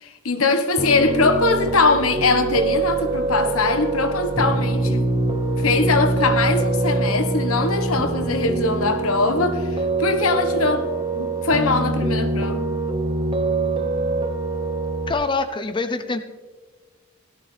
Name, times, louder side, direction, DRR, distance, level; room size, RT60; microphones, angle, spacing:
voice 1, 0.0-5.1 5.6-12.6, left 3 dB, 90° left, 1.3 m, -21 dB
Piano, 0.8-15.1, right 2 dB, 25° right, 0.9 m, -24 dB
voice 2, 15.1-16.2, left 3 dB, 25° left, 0.6 m, -24 dB
17.5 x 12.5 x 3.3 m
head